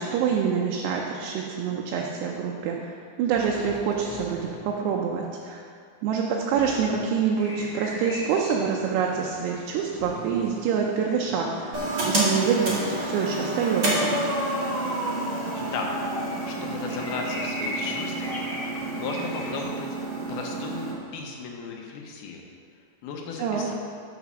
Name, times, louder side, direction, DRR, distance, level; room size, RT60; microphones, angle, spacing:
voice 1, 0.0-2.9 3.2-5.6 6.0-14.2 23.4-23.7, right 6 dB, 80° right, -1 dB, 2.7 m, -26 dB
sound 1, 3.3-5.3 6.5-7.7 10.0-10.9, left 1 dB, 50° left, 0.8 m, -43 dB
sound 2, 7.3-19.6, equal, 30° left, 1.3 m, -39 dB
sound 3, 11.7-20.9, right 2 dB, 50° right, 1.2 m, -29 dB
voice 2, 15.5-15.9 16.5-18.5 18.9-19.9 20.3-20.9 21.1-22.4 23.0-23.7, left 5 dB, 75° left, 0 dB, 2.6 m, -35 dB
8.3 x 5.5 x 6.1 m, 2.2 s
omnidirectional pair, 4.9 m